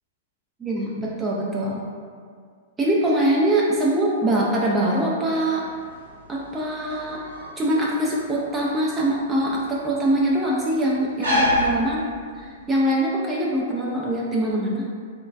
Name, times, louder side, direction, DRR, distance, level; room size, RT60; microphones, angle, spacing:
voice 1, 0.6-1.8 2.8-5.7 6.3-7.2 7.6-12.0 12.3-14.8, right 1 dB, 15° right, -4 dB, 0.3 m, -23 dB
sound 1, 5.6-12.6, left 1 dB, 85° right, 0.9 m, -29 dB
3.0 x 2.2 x 2.3 m, 2.1 s
figure-of-eight pair, 105°, 0 cm